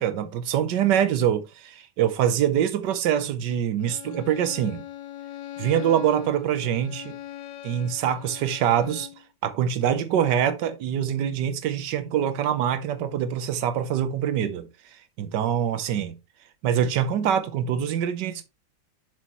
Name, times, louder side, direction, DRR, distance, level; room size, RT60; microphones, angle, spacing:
voice 1, 0.0-4.8 5.6-7.2 7.6-9.1 9.4-14.7 15.2-16.2 16.6-18.4, right 9 dB, 85° right, 1.5 m, -24 dB
Bowed string instrument, 3.8-9.3, left 12 dB, 85° left, 1.3 m, -41 dB
7.3 x 6.6 x 3.0 m
omnidirectional pair, 1.8 m